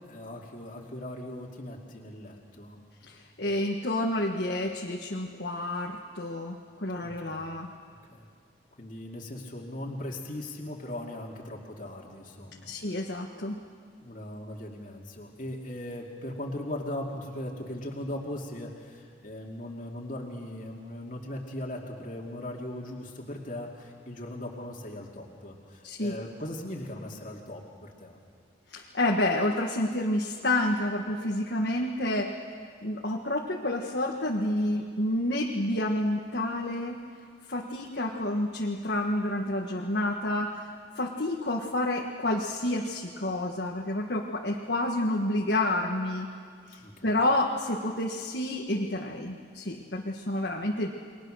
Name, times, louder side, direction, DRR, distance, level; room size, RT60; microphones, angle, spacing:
voice 1, 0.0-2.8 3.4-3.6 7.0-7.5 7.9-8.3 8.8-12.7 14.0-28.2 46.8-47.2, left 1 dB, 45° left, -2 dB, 2.6 m, -39 dB
voice 2, 3.1-7.7 12.7-13.6 25.8-26.2 28.7-32.4 32.8-37.0 37.5-46.3 46.7-50.9, left 1 dB, 60° left, -1 dB, 1.7 m, -29 dB
29.5 x 22.5 x 6.5 m, 2.1 s
head